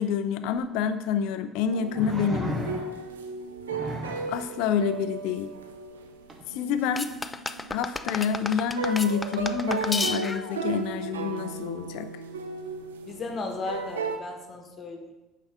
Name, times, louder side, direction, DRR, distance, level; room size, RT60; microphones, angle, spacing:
voice 1, 0.0-2.8 4.3-5.5 6.5-7.1 7.7-12.1, left 7 dB, 70° left, 11 dB, 0.5 m, -28 dB
sound 1, 0.6-0.7 1.9-3.1 3.7-4.4 6.3-6.4, right 1 dB, 30° right, 1.5 m, -34 dB
sound 2, 1.7-14.2, right 4 dB, 90° right, 0.5 m, -35 dB
sound 3, 7.0-10.6, left 3 dB, 20° left, 0.5 m, -32 dB
voice 2, 13.1-15.1, left 3 dB, 40° left, 3 dB, 1.5 m, -35 dB
8.6 x 5.6 x 3.6 m, 1.0 s
hypercardioid pair, 60°, 0 cm